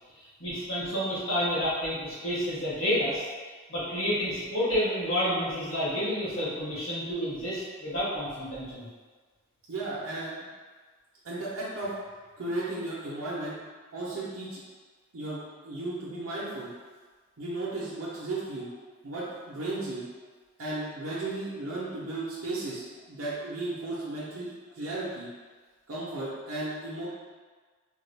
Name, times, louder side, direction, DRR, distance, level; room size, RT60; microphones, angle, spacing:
voice 1, 0.2-3.3 3.7-8.9, equal, 75° left, -12 dB, 1.4 m, -29 dB
voice 2, 9.7-10.3 11.2-11.9 12.4-13.6 13.9-14.6 15.1-16.7 17.4-18.7 19.0-20.0 20.6-25.3 25.9-27.1, right 2 dB, 80° right, -8 dB, 0.7 m, -35 dB
3.6 x 2.2 x 3.3 m, 1.5 s
head